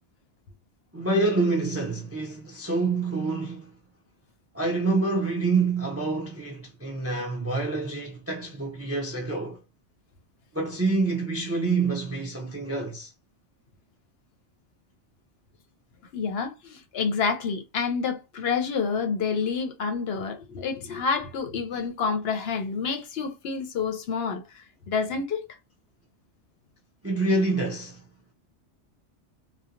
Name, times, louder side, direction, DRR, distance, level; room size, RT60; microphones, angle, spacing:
voice 1, 0.9-3.7 4.5-9.6 10.5-13.1 27.0-28.0, right 3 dB, 20° right, 0.4 m, -27 dB
voice 2, 16.1-25.5, left 5 dB, 65° left, 0.7 m, -28 dB
2.8 x 2.1 x 2.4 m
omnidirectional pair, 1.2 m